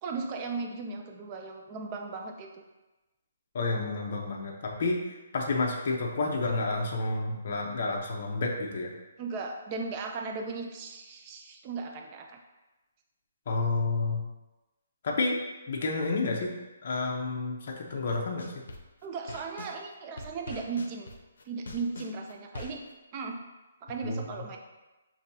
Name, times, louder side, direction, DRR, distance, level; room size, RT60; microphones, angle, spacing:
voice 1, 0.0-2.6 9.2-12.4 19.0-21.1 21.5-22.9 23.1-23.4 23.8-24.6, right 4 dB, 20° right, 3 dB, 0.4 m, -36 dB
voice 2, 3.5-8.9 13.5-14.2 15.0-15.4 15.7-16.5 16.8-18.6 24.0-24.2, left 3 dB, 40° left, -1 dB, 0.7 m, -30 dB
sound 1, 17.9-19.8 20.2-22.9, left 2 dB, 75° left, 0.7 m, -43 dB
6.9 x 2.7 x 2.7 m, 1.1 s
hypercardioid pair, 175°, 0 cm